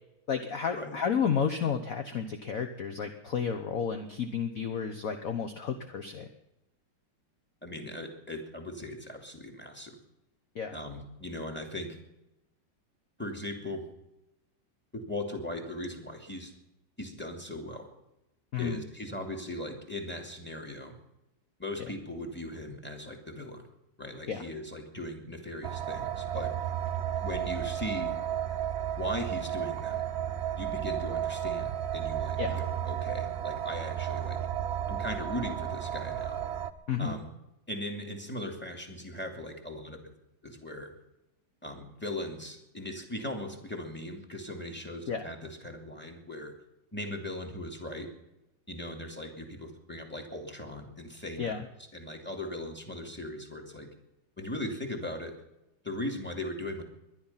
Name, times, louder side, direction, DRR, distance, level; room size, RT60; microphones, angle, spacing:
voice 1, 0.3-6.3 10.5-10.7 18.5-18.8 21.8-21.9 24.3-24.4 32.4-32.6 36.9-37.2 45.1-45.2 51.4-51.7, left 7 dB, 50° left, 6 dB, 1.3 m, -31 dB
voice 2, 7.6-10.0 10.7-12.0 13.2-13.9 14.9-16.5 17.0-17.9 18.6-21.0 21.6-23.7 24.0-26.5 27.2-28.1 29.0-30.0 30.6-34.4 34.9-36.4 37.0-37.3 37.7-40.1 40.4-40.9 41.6-46.5 46.9-48.1 48.7-51.6 51.9-53.9 54.4-55.3 55.8-56.8, left 1 dB, 5° left, 3 dB, 2.7 m, -39 dB
sound 1, 25.6-36.7, right 10 dB, 55° right, 0.7 m, -33 dB
21.5 x 11.5 x 5.7 m, 0.91 s
omnidirectional pair, 2.1 m